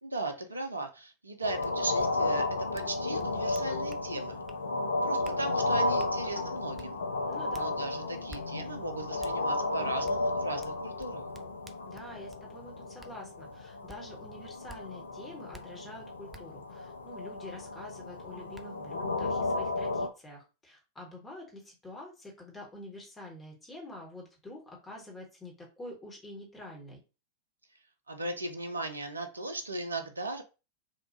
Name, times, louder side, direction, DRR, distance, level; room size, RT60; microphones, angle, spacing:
voice 1, 0.0-2.5 2.7-4.4 5.0-6.9 7.5-11.2 28.1-30.4, right 2 dB, 80° right, 6 dB, 0.4 m, -37 dB
sound 1, 1.4-20.1, left 2 dB, 70° left, 0.3 m, -33 dB
sound 2, 1.6-1.7 2.0-2.1 2.7-2.9 3.2-4.0 4.5-4.6 5.2-5.4 6.0-6.1 6.8-6.9 7.5-7.7 8.3-8.4 9.2-9.3 10.1-10.2 10.6-12.4 13.0-13.1 13.9-14.0 14.7-14.8 15.5-15.6 16.3-16.4 17.9-18.0 18.5-18.6, right 1 dB, 10° right, 0.3 m, -50 dB
voice 2, 7.3-7.8 11.9-27.0, left 1 dB, 15° left, -1 dB, 1.1 m, -47 dB
2.8 x 2.3 x 2.6 m, 0.30 s
figure-of-eight pair, 90°, 0 cm